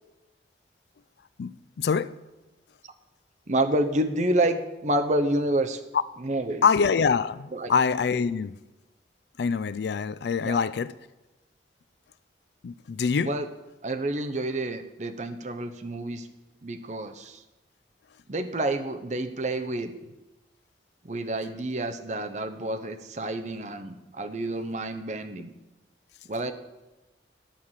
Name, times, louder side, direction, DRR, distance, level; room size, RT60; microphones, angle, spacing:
voice 1, 1.4-2.1 6.6-8.6 9.4-10.9 12.6-13.3, left 6 dB, 70° left, 0.4 m, -25 dB
voice 2, 3.5-5.8 6.2-6.6 7.5-7.7 10.4-10.6 13.2-13.5 13.8-16.3 16.6-17.4 18.3-19.9 21.0-25.5 26.3-26.5, right 1 dB, 40° right, 0.7 m, -28 dB
10.0 x 4.8 x 7.3 m
head